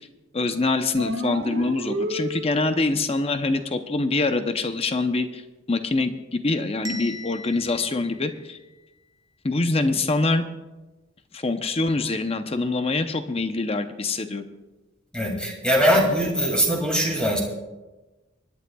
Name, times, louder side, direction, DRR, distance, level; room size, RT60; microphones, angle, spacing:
voice 1, 0.3-5.4 5.7-8.6 9.4-10.4 11.3-14.4, left 3 dB, 30° left, 8 dB, 0.7 m, -24 dB
sound 1, 1.0-2.9, equal, 75° right, 1.6 m, -30 dB
Bell, 6.9-8.9, left 1 dB, 20° right, 0.9 m, -40 dB
voice 2, 15.1-17.4, equal, 5° left, -1 dB, 2.3 m, -21 dB
25.0 x 11.0 x 2.3 m, 1.1 s
head